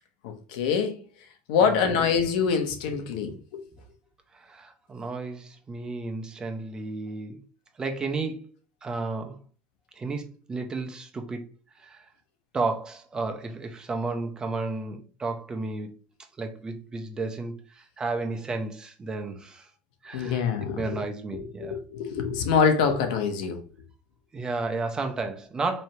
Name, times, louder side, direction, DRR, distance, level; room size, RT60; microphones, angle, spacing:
voice 1, 0.2-1.0 1.5-3.6 20.1-20.8 21.3-23.6, left 6 dB, 85° left, 0.9 m, -25 dB
voice 2, 1.6-1.9 4.3-7.4 7.8-8.5 8.8-9.4 10.0-11.4 11.8-12.1 12.5-15.9 16.4-19.7 20.0-21.8 24.3-25.8, right 3 dB, 20° right, 0.6 m, -32 dB
4.3 x 3.2 x 2.8 m
supercardioid pair, 135°, 4 cm